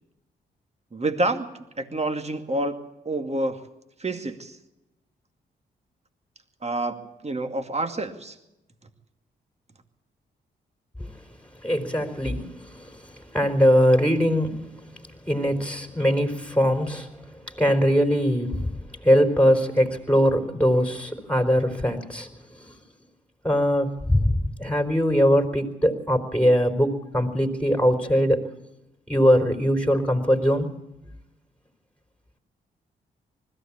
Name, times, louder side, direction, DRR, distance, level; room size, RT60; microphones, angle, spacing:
voice 1, 0.9-1.5 1.8-2.8 3.0-3.6 4.0-4.6 6.6-8.4, right 2 dB, 35° right, 2.3 m, -28 dB
voice 2, 11.6-22.8 23.4-28.4 29.1-30.7, equal, 5° left, 3.9 m, -22 dB
20.5 x 15.0 x 8.6 m
hypercardioid pair, 40°, 20 cm